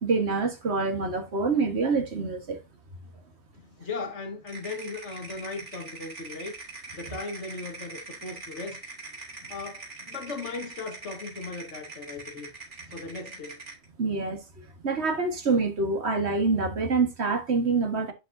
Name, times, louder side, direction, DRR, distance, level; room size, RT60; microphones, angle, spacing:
voice 1, 0.0-2.6 14.0-14.4 14.8-18.1, right 4 dB, 65° right, 1.8 m, -26 dB
voice 2, 3.6-6.6 6.9-8.8 9.4-12.5 12.8-13.6 14.9-15.0, left 3 dB, 80° left, 1.9 m, -37 dB
sound 1, 4.5-13.8, right 3 dB, 85° right, 3.1 m, -43 dB
11.0 x 5.3 x 2.7 m
omnidirectional pair, 1.2 m